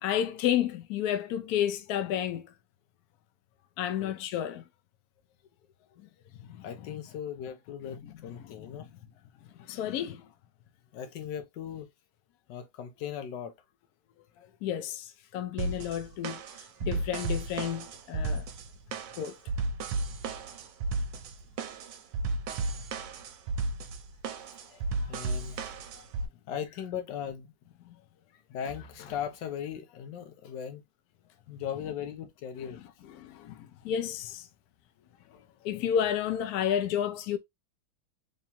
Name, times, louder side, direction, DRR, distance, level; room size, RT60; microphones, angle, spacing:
voice 1, 0.0-2.5 3.8-4.6 6.4-7.0 8.0-8.1 8.4-8.9 9.6-10.3 14.6-16.4 16.8-18.4 19.1-19.4 27.8-28.0 33.1-34.5 35.6-37.4, left 10 dB, 85° left, 0.8 m, -31 dB
voice 2, 6.6-8.9 10.9-11.9 12.5-13.5 21.1-21.2 24.7-25.7 26.5-27.5 28.5-30.8 31.5-32.9 35.3-35.4, left 8 dB, 70° left, 1.2 m, -38 dB
sound 1, 15.6-26.3, right 3 dB, 70° right, 1.1 m, -34 dB
3.5 x 3.1 x 2.8 m
omnidirectional pair, 2.3 m